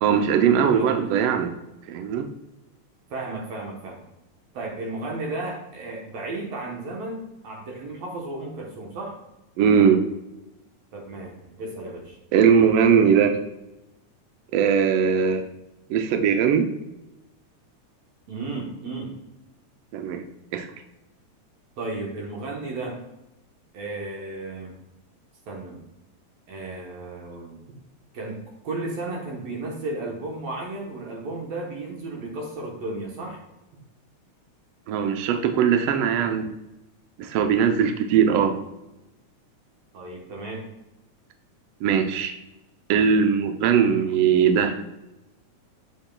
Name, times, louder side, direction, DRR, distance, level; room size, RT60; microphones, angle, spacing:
voice 1, 0.0-1.5 1.9-2.3 9.6-10.0 12.3-13.3 14.5-15.4 15.9-16.7 19.9-20.2 20.5-20.7 34.9-36.5 37.2-38.5 41.8-42.3 42.9-44.7, right 7 dB, 80° right, 6 dB, 1.3 m, -20 dB
voice 2, 0.7-1.1 3.1-4.0 4.5-9.2 10.9-12.2 18.3-19.2 21.8-23.0 23.7-24.7 25.5-25.8 26.5-27.6 28.1-33.4 33.7-33.8 39.9-40.7, right 2 dB, 65° right, -1 dB, 2.1 m, -34 dB
7.2 x 6.9 x 2.3 m, 0.94 s
omnidirectional pair, 3.5 m